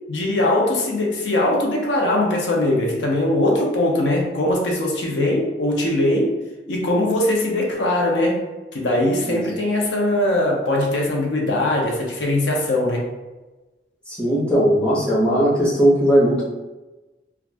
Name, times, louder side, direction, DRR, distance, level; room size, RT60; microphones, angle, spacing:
voice 1, 0.1-6.3 6.7-8.4 8.7-13.1, left 1 dB, 85° left, -1 dB, 0.6 m, -21 dB
voice 2, 14.1-16.4, equal, 5° left, -9 dB, 1.0 m, -18 dB
2.4 x 2.3 x 3.3 m, 1.1 s
head